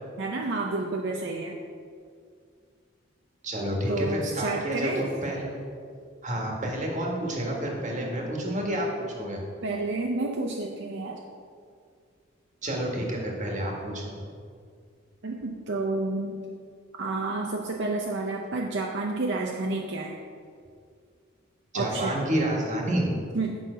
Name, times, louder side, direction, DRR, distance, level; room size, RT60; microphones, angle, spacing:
voice 1, 0.2-1.6 3.9-5.0 9.6-11.2 15.2-16.4 17.0-20.2 21.7-22.2 23.3-23.6, right 2 dB, 65° right, 1 dB, 0.6 m, -30 dB
voice 2, 3.4-5.6 6.2-9.4 12.6-14.1 21.7-23.1, right 1 dB, 40° right, -1 dB, 1.6 m, -29 dB
8.8 x 5.7 x 5.0 m, 2.2 s
head